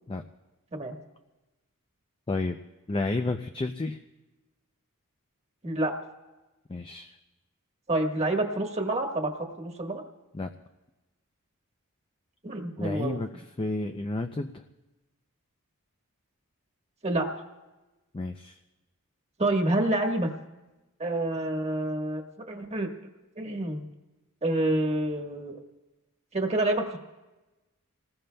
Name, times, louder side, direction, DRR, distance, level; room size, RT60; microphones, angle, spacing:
voice 1, 2.9-4.0 6.7-7.1 10.3-10.5 12.8-13.3 13.6-14.6 18.1-18.6, left 2 dB, 25° left, 6 dB, 0.5 m, -31 dB
voice 2, 5.6-5.9 7.9-9.3 9.6-10.0 12.4-13.2 17.0-17.3 19.4-20.3 21.0-22.2 22.5-22.9 23.4-23.8 24.4-25.6 26.3-27.0, right 1 dB, 30° right, 2 dB, 1.4 m, -27 dB
27.0 x 20.0 x 2.3 m, 1.1 s
head